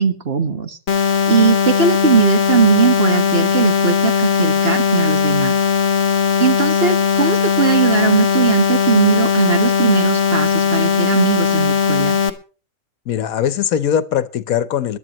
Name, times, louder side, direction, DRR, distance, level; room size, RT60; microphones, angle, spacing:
voice 1, 0.0-5.5 6.4-12.2, right 6 dB, 45° right, 8 dB, 1.4 m, -18 dB
sound 1, 0.9-12.3, left 6 dB, 50° left, 1.4 m, -18 dB
voice 2, 13.1-15.0, left 9 dB, 75° left, 15 dB, 1.3 m, -20 dB
21.5 x 11.5 x 3.0 m, 0.36 s
omnidirectional pair, 1.5 m